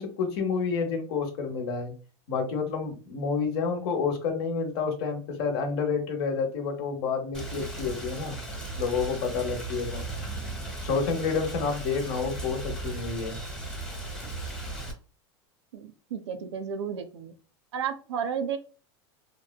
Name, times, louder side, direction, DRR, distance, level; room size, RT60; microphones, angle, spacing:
voice 1, 0.0-1.9 2.3-8.4 8.8-10.0 10.8-13.4 14.2-14.3, left 5 dB, 65° left, 4 dB, 0.8 m, -29 dB
Rain, 7.3-14.9, right 2 dB, 5° left, 0.7 m, -36 dB
voice 2, 15.7-17.3 17.7-18.6, right 7 dB, 90° right, 8 dB, 0.5 m, -32 dB
3.0 x 2.1 x 2.2 m, 0.37 s
supercardioid pair, 115°, 14 cm